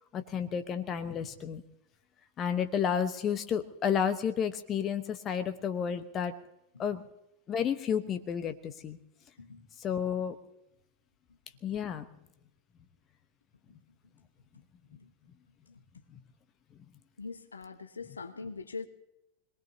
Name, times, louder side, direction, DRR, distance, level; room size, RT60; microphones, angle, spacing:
voice 1, 0.1-1.6 2.4-6.3 6.8-7.0 7.5-9.0 9.8-10.4 11.6-12.0, left 8 dB, 30° left, 9 dB, 1.1 m, -31 dB
voice 2, 17.2-18.9, left 4 dB, 75° left, 8 dB, 1.2 m, -42 dB
26.0 x 19.5 x 2.8 m, 0.85 s
figure-of-eight pair, 90°, 0 cm